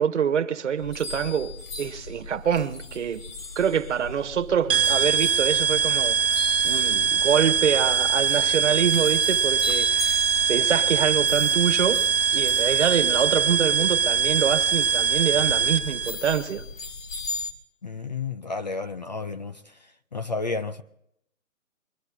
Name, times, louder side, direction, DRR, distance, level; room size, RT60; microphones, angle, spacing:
voice 1, 0.0-3.2 3.5-6.2 6.6-12.0 12.3-16.6, right 8 dB, 60° right, 1.5 m, -25 dB
sound 1, 0.8-17.5, left 3 dB, 70° left, 2.3 m, -38 dB
sound 2, 4.7-16.1, right 7 dB, 40° right, 1.3 m, -22 dB
voice 2, 17.8-19.6 20.1-20.8, left 4 dB, 35° left, 0.5 m, -31 dB
22.5 x 13.0 x 3.9 m
hypercardioid pair, 150°, 41 cm